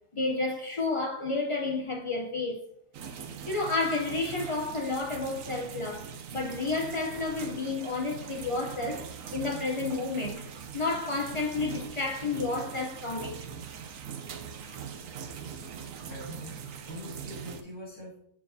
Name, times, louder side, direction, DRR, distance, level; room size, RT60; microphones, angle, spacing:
voice 1, 0.1-2.6 3.5-9.1 9.3-10.5 10.7-13.4, left 3 dB, 45° left, 0.4 m, -31 dB
sound 1, 2.9-17.6, right 7 dB, 70° right, 1.0 m, -42 dB
voice 2, 16.1-18.2, equal, 80° left, 3.1 m, -43 dB
7.2 x 6.8 x 2.7 m
omnidirectional pair, 1.6 m